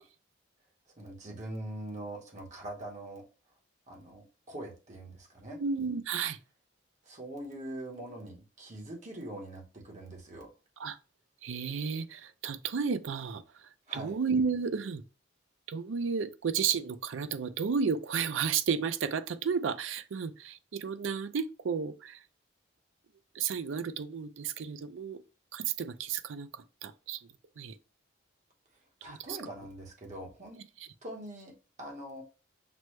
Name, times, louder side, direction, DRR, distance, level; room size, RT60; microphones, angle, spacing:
voice 1, 1.0-3.2 3.9-5.6 7.0-10.5 13.9-14.2 29.0-30.6 31.0-31.5 31.8-32.2, right 1 dB, 35° right, 1.0 m, -43 dB
voice 2, 5.6-6.4 10.8-11.0 11.4-13.4 13.9-15.0 15.7-22.2 23.4-25.2 25.5-26.5 26.8-27.2 27.6-27.7 29.1-29.2, right 6 dB, 75° right, 0.4 m, -32 dB
6.0 x 2.2 x 3.1 m
head